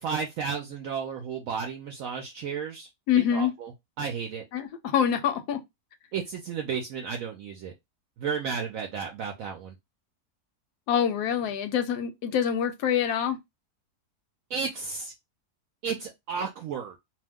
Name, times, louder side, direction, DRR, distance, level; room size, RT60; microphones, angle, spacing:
voice 1, 0.0-2.9 3.3-3.7 4.0-4.4 6.1-7.7 8.2-9.7 14.5-15.1 15.8-17.0, right 6 dB, 70° right, 0.9 m, -33 dB
voice 2, 3.1-3.5 4.5-5.6 10.9-13.4, left 8 dB, 80° left, 1.1 m, -25 dB
2.8 x 2.1 x 3.4 m
omnidirectional pair, 1.7 m